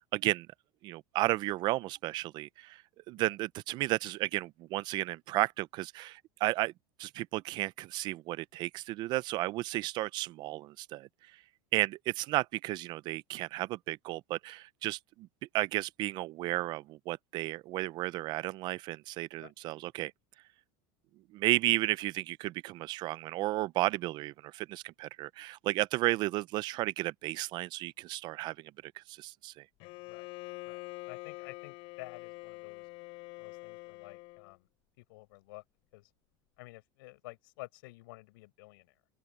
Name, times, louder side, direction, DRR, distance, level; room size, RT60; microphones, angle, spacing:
voice 1, 0.1-0.5 0.8-2.8 3.1-6.7 7.0-11.1 11.7-15.3 15.5-20.1 21.3-29.6, right 18 dB, 40° right, 0.4 m, -33 dB
Bowed string instrument, 29.8-34.5, left 25 dB, 55° left, 6.5 m, -45 dB
voice 2, 30.7-32.9 33.4-34.7 35.0-35.6 35.9-36.1 36.6-38.9, left 22 dB, 80° left, 6.9 m, -51 dB
open air
supercardioid pair, 160°, 11 cm